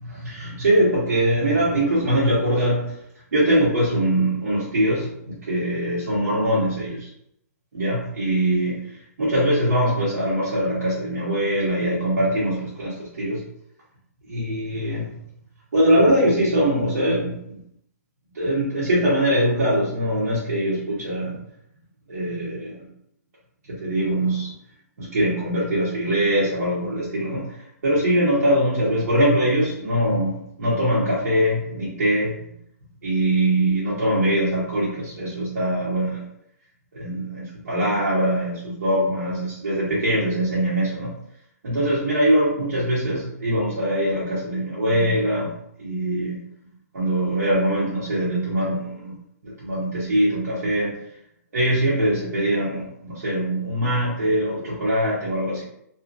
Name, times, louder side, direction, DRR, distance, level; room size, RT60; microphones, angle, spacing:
voice 1, 0.0-2.9 3.3-7.1 7.7-13.4 14.3-15.1 15.7-17.3 18.3-21.4 22.1-22.9 23.7-24.5 25.0-32.4 33.0-36.2 36.9-41.1 41.6-45.5 45.8-46.4 46.9-49.1 49.4-50.9 51.5-55.6, right 1 dB, 85° right, -9 dB, 1.1 m, -22 dB
2.7 x 2.4 x 2.5 m, 0.74 s
hypercardioid pair, 160°, 9 cm